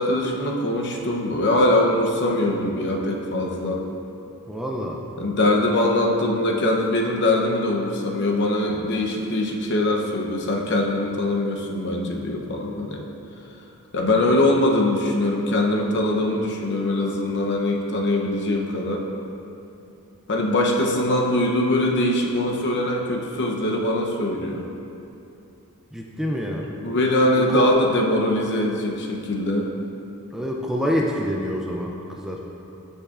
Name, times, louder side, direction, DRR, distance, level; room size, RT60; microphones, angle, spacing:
voice 1, 0.0-3.8 5.2-13.0 13.9-19.1 20.3-24.7 26.8-29.7, left 1 dB, 50° left, 0 dB, 0.8 m, -22 dB
voice 2, 4.5-5.0 25.9-26.7 27.5-27.7 30.3-32.5, equal, ahead, -2 dB, 0.4 m, -27 dB
13.0 x 5.4 x 2.5 m, 2.8 s
head